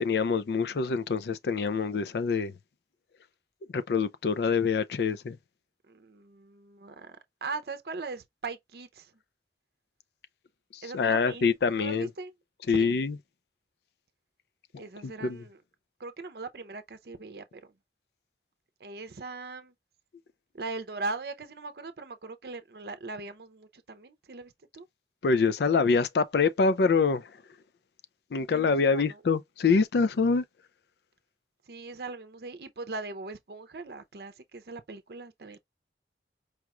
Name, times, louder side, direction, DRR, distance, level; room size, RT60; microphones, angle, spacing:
voice 1, 0.0-2.5 3.7-5.4 10.7-12.1 12.7-13.2 14.7-15.4 25.2-27.3 28.3-30.4, left 5 dB, 65° left, 0.4 m, -25 dB
voice 2, 5.9-9.1 10.8-11.4 11.7-12.3 12.7-12.9 14.8-15.6 16.0-17.6 18.8-19.7 20.5-24.9 28.5-29.2 31.7-35.6, right 3 dB, 60° right, 0.6 m, -40 dB
4.8 x 2.3 x 3.0 m
head